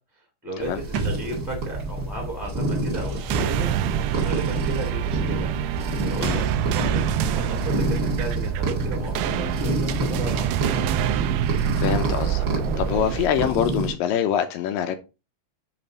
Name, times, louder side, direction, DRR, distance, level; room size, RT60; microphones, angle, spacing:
voice 1, 0.4-3.7 4.1-5.5 6.0-7.1 7.3-10.8, right 2 dB, ahead, 1.4 m, -34 dB
sound 1, 0.6-13.9, right 1 dB, 35° right, 1.4 m, -28 dB
sound 2, 0.9-4.5 4.7-4.8, right 4 dB, 65° right, 1.7 m, -37 dB
sound 3, 3.1-13.3, right 11 dB, 85° right, 2.4 m, -26 dB
voice 2, 11.8-12.5 12.8-15.0, left 9 dB, 80° left, 2.1 m, -24 dB
8.9 x 3.4 x 4.0 m
omnidirectional pair, 4.4 m